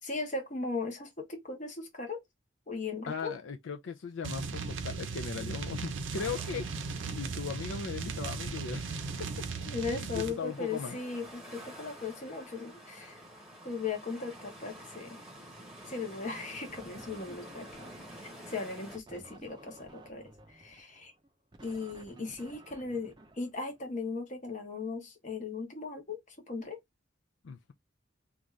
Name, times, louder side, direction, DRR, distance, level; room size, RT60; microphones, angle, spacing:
voice 1, 0.0-2.2 2.7-3.3 9.7-13.2 13.6-15.2 15.8-17.9 18.2-21.1 21.6-26.8, left 4 dB, 40° left, 0.9 m, -38 dB
voice 2, 3.1-6.7 7.1-8.8 9.2-9.5 9.9-11.0 27.4-27.7, left 6 dB, 75° left, 0.4 m, -38 dB
sound 1, 4.2-10.4, right 4 dB, 75° right, 0.6 m, -37 dB
sound 2, 6.1-19.0, equal, ahead, 1.1 m, -50 dB
sound 3, 16.7-18.3 18.9-24.0, right 1 dB, 20° right, 0.5 m, -54 dB
2.5 x 2.4 x 3.1 m
head